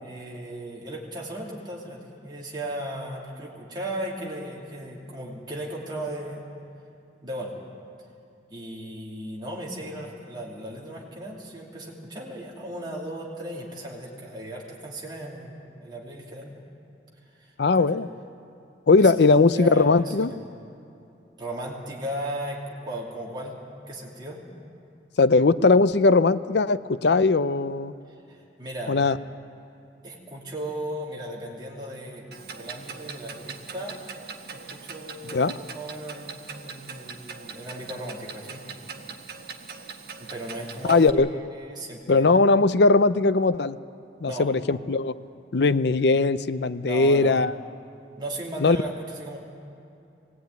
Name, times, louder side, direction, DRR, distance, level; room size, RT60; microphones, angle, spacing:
voice 1, 0.0-6.4 7.2-7.5 8.5-16.6 17.3-17.5 17.9-18.0 19.0-20.4 21.4-23.6 23.9-24.4 28.3-29.0 30.0-32.3 32.6-34.0 34.5-38.6 40.2-42.2 44.3-44.4 46.8-47.4 48.2-49.4, right 1 dB, 25° right, -4 dB, 2.9 m, -36 dB
voice 2, 17.6-18.1 18.9-20.3 25.2-27.9 28.9-29.2 35.3-35.6 40.9-41.3 42.1-43.8 44.2-45.1 45.5-47.5 48.6-48.8, left 3 dB, 60° left, 14 dB, 0.6 m, -19 dB
Clock, 32.3-41.1, right 5 dB, 55° right, 1.4 m, -41 dB
21.5 x 17.5 x 9.3 m, 2.7 s
head